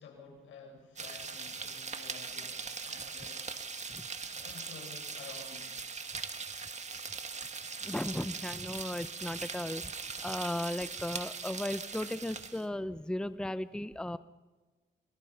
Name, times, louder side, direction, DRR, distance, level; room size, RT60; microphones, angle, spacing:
voice 1, 0.0-3.5 4.2-5.8, left 5 dB, 75° left, 4 dB, 6.8 m, -51 dB
sound 1, 1.0-12.6, right 5 dB, 35° right, 2.1 m, -41 dB
voice 2, 7.8-9.8 10.2-14.2, left 1 dB, 5° left, 13 dB, 0.9 m, -36 dB
28.5 x 27.5 x 5.8 m, 1.2 s
cardioid pair, 90°, 20 cm